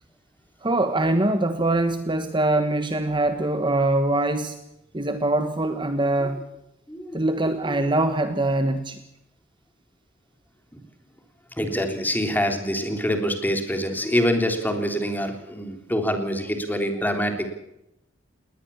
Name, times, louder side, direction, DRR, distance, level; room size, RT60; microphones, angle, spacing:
voice 1, 0.6-4.6 4.9-6.4 7.1-9.0, right 2 dB, 25° right, 8 dB, 1.4 m, -23 dB
voice 2, 6.9-7.2 7.7-7.8 10.7-10.8 11.6-17.5, equal, 10° left, 5 dB, 3.4 m, -25 dB
20.0 x 19.5 x 7.1 m, 0.85 s
head